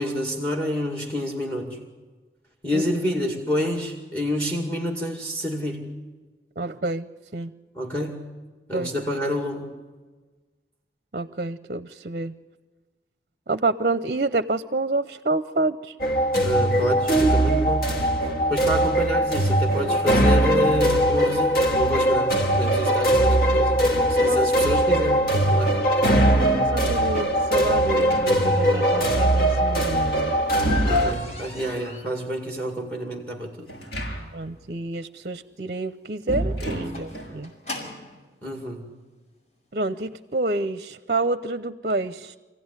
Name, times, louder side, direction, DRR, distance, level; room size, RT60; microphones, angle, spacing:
voice 1, 0.0-1.8 2.6-5.8 7.8-8.2 8.7-9.7 16.4-17.9 18.5-23.8 24.1-25.8 30.8-33.7 38.4-38.9, equal, 10° left, 2 dB, 2.2 m, -28 dB
voice 2, 6.6-7.1 7.3-7.5 8.7-8.9 11.1-12.3 13.5-16.0 24.3-24.4 26.4-30.3 34.3-37.5 39.7-42.4, right 2 dB, 50° right, 12 dB, 0.6 m, -28 dB
sound 1, 16.0-31.1, right 1 dB, 55° left, 2.0 m, -20 dB
sound 2, 27.9-28.7 30.0-31.8 33.7-34.5 34.7-34.8 36.3-37.4, right 1 dB, 70° left, 6.9 m, -30 dB
sound 3, 29.4-38.2 39.1-39.2 39.7-39.9 40.2-40.3 40.7-40.8, left 1 dB, 40° left, 6.2 m, -42 dB
25.5 x 16.0 x 9.7 m, 1.3 s
head